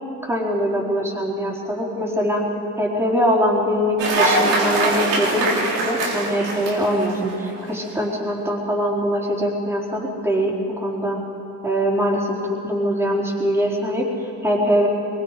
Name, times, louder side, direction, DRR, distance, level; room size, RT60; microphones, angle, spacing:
voice 1, 0.2-2.4 2.8-11.2 11.6-12.4 12.6-14.9, equal, 10° right, -4 dB, 4.0 m, -22 dB
Cheering / Applause, 4.0-7.7, right 2 dB, 85° right, 4.1 m, -22 dB
23.0 x 22.5 x 5.0 m, 2.8 s
cardioid pair, 120°, 31 cm